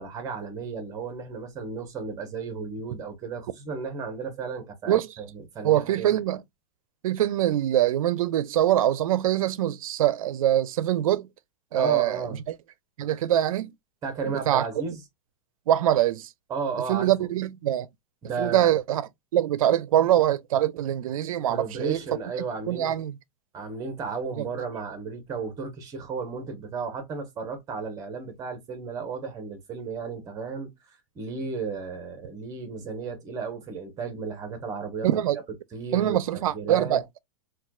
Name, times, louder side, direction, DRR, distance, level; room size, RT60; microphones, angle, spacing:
voice 1, 0.0-6.2 11.7-12.4 14.0-15.0 16.5-17.3 18.2-18.7 21.5-23.0 23.5-30.7 31.1-35.1 35.7-37.0, right 5 dB, 20° right, 0.9 m, -34 dB
voice 2, 5.6-6.4 7.0-11.3 11.7-12.2 12.5-12.6 13.0-13.7 14.5-14.7 15.7-16.3 16.9-17.9 18.4-19.0 19.3-22.0 22.7-23.1 24.4-24.5 35.0-35.4 35.9-37.2, right 12 dB, 85° right, 0.4 m, -23 dB
4.2 x 2.3 x 2.2 m
supercardioid pair, 160°, 17 cm